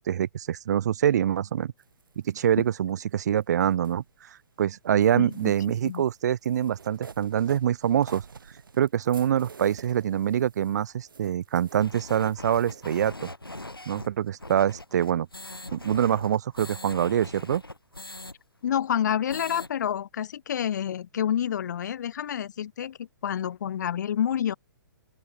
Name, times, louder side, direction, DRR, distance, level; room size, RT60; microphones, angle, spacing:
voice 1, 0.1-1.7 2.2-8.2 8.8-13.3 13.9-15.3 15.7-17.6, right 10 dB, 50° right, 0.4 m, -25 dB
sound 1, 1.8-4.6 4.9-13.1, right 5 dB, 70° right, 1.3 m, -49 dB
voice 2, 5.2-5.5 5.8-6.0 18.6-24.5, left 9 dB, 55° left, 0.4 m, -28 dB
sound 2, 11.8-18.3 18.7-18.8 19.1-19.7, left 2 dB, 85° left, 4.5 m, -41 dB
open air
figure-of-eight pair, 120°, 12 cm